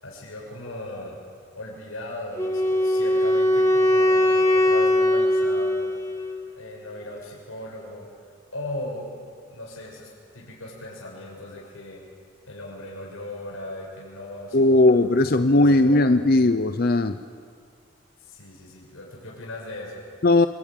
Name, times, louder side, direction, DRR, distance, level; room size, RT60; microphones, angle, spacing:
voice 1, 0.0-1.2 1.5-5.9 6.5-8.1 8.5-9.1 9.5-12.0 12.5-16.3 18.2-20.1, left 1 dB, 85° left, -2 dB, 6.5 m, -38 dB
Wind instrument woodwind instrument, 2.4-6.5, left 1 dB, 15° left, 1.6 m, -21 dB
voice 2, 14.5-17.2 20.2-20.5, left 2 dB, 45° left, 9 dB, 0.7 m, -18 dB
26.5 x 21.0 x 9.1 m, 2.2 s
head